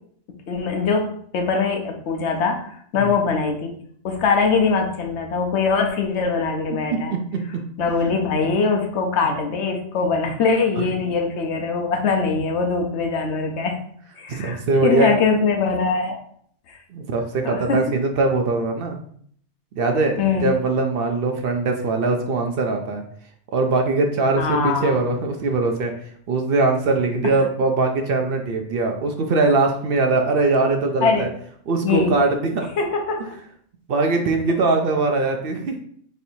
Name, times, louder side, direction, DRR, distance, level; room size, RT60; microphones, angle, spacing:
voice 1, 0.5-1.1 1.3-3.7 4.0-7.1 7.8-13.7 14.2-16.2 16.7-16.8 17.5-17.8 20.2-20.5 24.4-25.0 31.0-31.2 31.8-32.1 32.8-33.3, left 4 dB, 75° left, 3 dB, 1.0 m, -22 dB
voice 2, 7.0-7.6 10.8-10.9 14.3-15.1 16.9-19.0 19.8-23.0 23.5-25.9 26.3-31.3 31.7-32.7 33.2-33.3 33.9-35.7, right 3 dB, 60° right, 3 dB, 0.7 m, -21 dB
4.2 x 3.2 x 2.7 m, 0.63 s
omnidirectional pair, 1.2 m